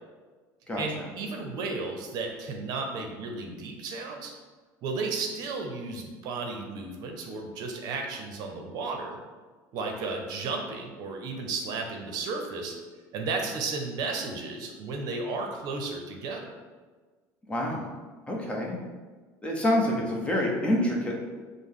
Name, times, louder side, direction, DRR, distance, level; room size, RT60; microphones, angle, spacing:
voice 1, 0.8-4.3 4.8-9.2 9.7-12.7 13.1-16.5, right 3 dB, 60° right, 2 dB, 0.7 m, -33 dB
voice 2, 17.5-17.9 18.3-18.8 19.4-21.1, left 1 dB, 15° left, -1 dB, 0.7 m, -27 dB
5.1 x 2.1 x 3.7 m, 1.4 s
cardioid pair, 125°, 8 cm